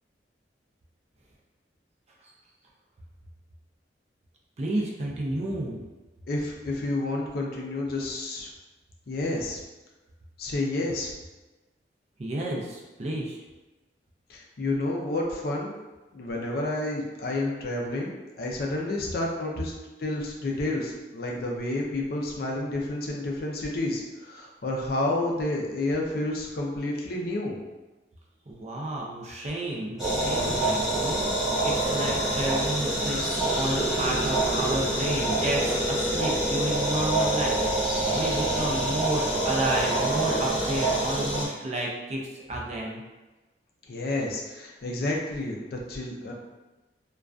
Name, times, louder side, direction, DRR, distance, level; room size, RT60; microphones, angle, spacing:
voice 1, 4.6-5.8 12.2-13.4 28.5-43.0, right 1 dB, 40° right, -2 dB, 0.4 m, -31 dB
voice 2, 6.3-8.5 9.1-9.6 10.4-11.1 14.3-15.8 16.1-19.7 20.0-27.6 43.9-46.3, left 2 dB, 60° left, -1 dB, 0.4 m, -30 dB
sound 1, 30.0-41.5, right 1 dB, ahead, 0.7 m, -26 dB
2.4 x 2.2 x 2.3 m, 1.1 s
head